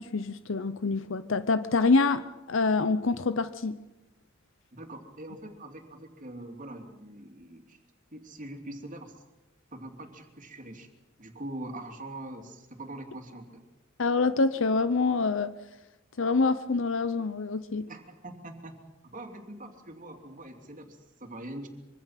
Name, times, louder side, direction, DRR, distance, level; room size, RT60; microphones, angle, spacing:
voice 1, 0.0-3.8 14.0-15.5 16.2-17.9, left 3 dB, 65° left, 13 dB, 0.8 m, -26 dB
voice 2, 4.7-7.8 8.1-9.2 9.7-10.9 11.2-13.6 17.9-18.8 19.0-21.7, right 1 dB, 40° right, 4 dB, 3.0 m, -43 dB
25.0 x 24.0 x 5.9 m, 1.0 s
head